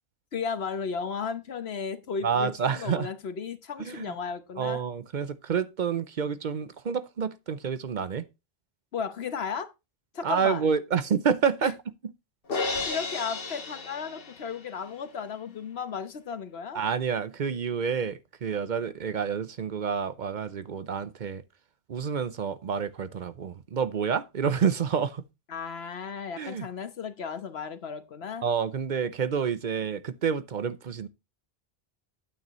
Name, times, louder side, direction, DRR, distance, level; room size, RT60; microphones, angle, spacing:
voice 1, 0.3-4.9 8.9-9.7 10.1-10.6 11.6-11.7 12.9-16.8 25.5-28.5, left 6 dB, 85° left, 1.3 m, -34 dB
voice 2, 2.2-3.1 3.8-4.1 4.6-8.3 10.2-11.7 16.7-21.4 21.9-25.2 26.4-26.7 28.4-31.1, right 6 dB, 55° right, 0.7 m, -28 dB
Crash cymbal, 12.5-14.8, left 3 dB, 65° left, 1.3 m, -33 dB
9.2 x 8.9 x 3.0 m
omnidirectional pair, 1.0 m